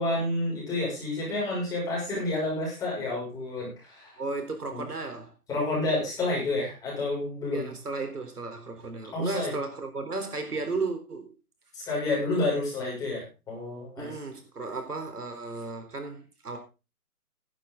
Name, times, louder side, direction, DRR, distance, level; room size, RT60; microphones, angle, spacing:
voice 1, 0.0-4.2 4.7-4.8 5.5-7.7 9.1-9.5 11.7-14.1, left 2 dB, 10° left, 6.4 m, -29 dB
voice 2, 4.2-5.3 7.5-11.3 14.0-16.6, right 3 dB, 80° right, 4.1 m, -34 dB
15.5 x 11.5 x 3.9 m
hypercardioid pair, 160°, 45 cm